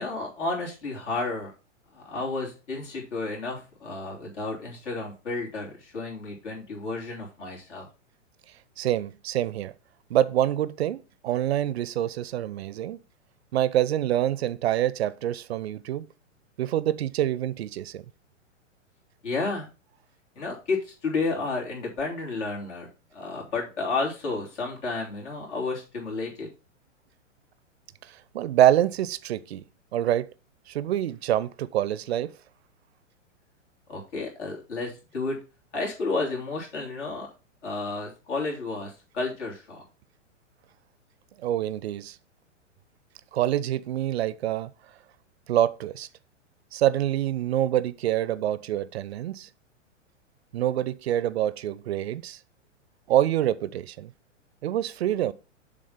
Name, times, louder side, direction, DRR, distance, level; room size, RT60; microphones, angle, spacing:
voice 1, 0.0-1.5 1.9-7.9 19.2-19.7 20.3-22.9 23.1-26.5 33.9-35.4 35.7-37.3 37.6-39.8, left 3 dB, 65° left, 3.1 m, -31 dB
voice 2, 8.8-9.7 10.1-13.0 13.5-16.1 16.6-18.0 28.1-29.6 29.9-30.3 30.7-32.3 41.4-42.2 43.3-44.7 45.5-46.1 46.7-49.5 50.5-52.4 53.1-54.1 54.6-55.3, right 12 dB, 55° right, 0.6 m, -26 dB
6.7 x 3.8 x 5.2 m
figure-of-eight pair, 110°, 38 cm